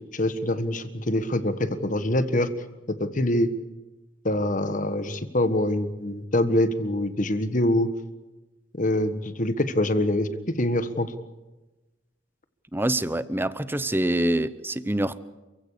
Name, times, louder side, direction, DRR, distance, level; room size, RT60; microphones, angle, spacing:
voice 1, 0.1-2.5 2.9-3.5 4.2-7.9 8.7-11.1, left 1 dB, 40° left, 11 dB, 1.5 m, -25 dB
voice 2, 12.7-15.2, right 1 dB, 10° right, 15 dB, 0.8 m, -25 dB
28.5 x 16.0 x 8.4 m, 1.1 s
head